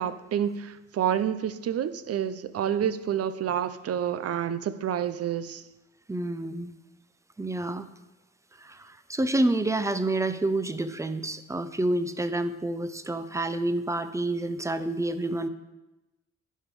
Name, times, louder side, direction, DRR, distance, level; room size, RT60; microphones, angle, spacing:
voice 1, 0.0-5.6, right 9 dB, 55° right, 14 dB, 0.6 m, -28 dB
voice 2, 6.1-6.7 7.4-7.9 8.6-15.5, right 2 dB, 10° right, 12 dB, 0.6 m, -28 dB
11.0 x 5.3 x 4.8 m, 1.0 s
cardioid pair, 90°, 30 cm